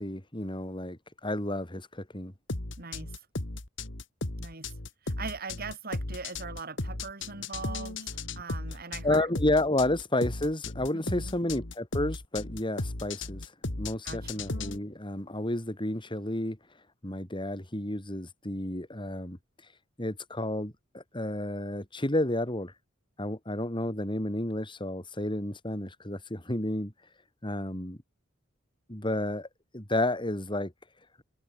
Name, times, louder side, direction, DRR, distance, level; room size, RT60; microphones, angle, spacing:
voice 1, 0.0-2.3 9.0-13.5 13.8-16.6 17.0-19.4 20.0-22.7 23.2-26.9 27.4-28.0 28.9-29.5 29.7-30.7, left 1 dB, 25° left, 3.6 m, -31 dB
sound 1, 2.5-14.8, left 2 dB, 70° left, 2.3 m, -35 dB
voice 2, 2.8-3.1 4.4-4.7 5.0-9.3 10.9-11.4 14.0-14.4, right 4 dB, 50° right, 4.3 m, -41 dB
head